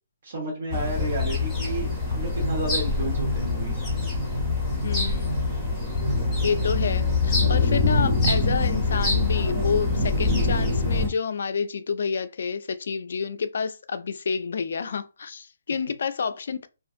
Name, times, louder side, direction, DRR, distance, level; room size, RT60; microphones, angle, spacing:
voice 1, 0.2-3.8, right 1 dB, 60° right, 1.0 m, -32 dB
sound 1, 0.7-11.1, left 3 dB, ahead, 0.8 m, -24 dB
voice 2, 4.8-5.4 6.4-16.7, left 6 dB, 60° left, 0.3 m, -29 dB
2.4 x 2.4 x 2.5 m
hypercardioid pair, 160°, 0 cm